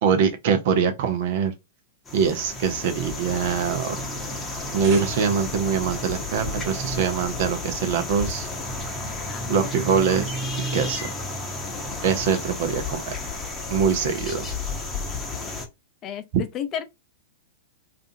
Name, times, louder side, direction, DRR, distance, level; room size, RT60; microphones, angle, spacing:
voice 1, 0.0-1.5 2.1-4.0 4.7-8.5 9.5-10.3 10.7-11.1 12.0-13.2 13.7-14.5, right 6 dB, 55° right, 0.7 m, -23 dB
sound 1, 2.1-15.7, left 2 dB, 15° left, 0.9 m, -32 dB
sound 2, 4.5-5.7, right 6 dB, 35° right, 1.0 m, -41 dB
voice 2, 9.3-9.8 16.0-16.8, left 9 dB, 35° left, 0.5 m, -33 dB
2.5 x 2.4 x 2.7 m
hypercardioid pair, 105°, 0 cm